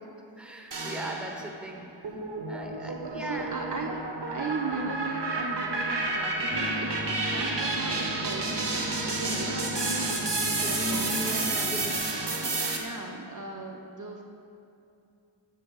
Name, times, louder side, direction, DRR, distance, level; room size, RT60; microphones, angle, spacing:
voice 1, 0.4-1.9 2.5-3.6 9.3-9.6 10.6-12.0 12.5-12.8, right 1 dB, ahead, 2 dB, 0.8 m, -39 dB
sound 1, 0.7-1.6 2.0-12.8, right 3 dB, 65° right, 0.9 m, -31 dB
voice 2, 2.7-4.0 4.3-6.9 7.3-8.6 9.0-10.3 10.6-11.4 12.4-14.2, right 3 dB, 40° right, 1 dB, 0.6 m, -37 dB
sound 2, 6.5-12.0, equal, 30° left, 0.7 m, -37 dB
10.5 x 7.6 x 2.3 m, 2.6 s
wide cardioid pair, 45°, 46 cm